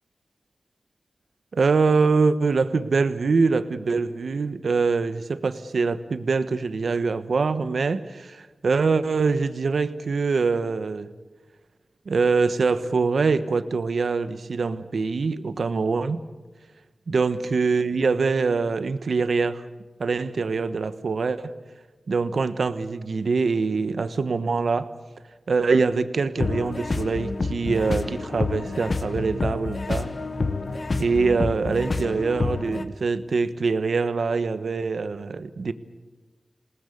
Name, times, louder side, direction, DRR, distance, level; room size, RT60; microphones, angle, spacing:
voice 1, 1.5-11.1 12.1-16.2 17.1-19.6 20.0-21.5 22.1-24.9 25.5-30.1 31.0-35.7, right 4 dB, 80° right, 12 dB, 1.2 m, -24 dB
sound 1, 26.4-32.8, left 3 dB, 55° left, 1.3 m, -28 dB
27.5 x 19.0 x 8.6 m, 1.3 s
wide cardioid pair, 65°, 0 cm